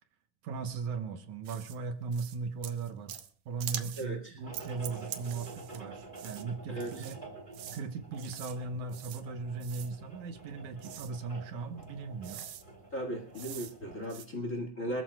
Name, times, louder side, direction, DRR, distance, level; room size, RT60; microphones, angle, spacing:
voice 1, 0.4-3.2 3.5-7.2 7.7-12.4, right 4 dB, 75° right, 8 dB, 2.4 m, -38 dB
sound 1, 1.5-1.8 2.1-2.4 2.6-3.3 3.6-4.1 4.5-5.8 6.1-6.4 6.8-7.2 7.5-7.8 8.2-8.6 8.9-9.2 9.6-9.9 10.8-11.1 11.8-11.9 12.2-12.6 13.3-13.7 14.0-14.3, right 11 dB, 90° right, 2.7 m, -43 dB
voice 2, 4.0-4.4 6.7-7.1 12.9-15.0, equal, 30° left, 3 dB, 1.7 m, -37 dB
sound 2, 4.4-14.1, right 3 dB, 15° right, 3.1 m, -49 dB
26.0 x 14.0 x 2.3 m, 0.41 s
omnidirectional pair, 3.6 m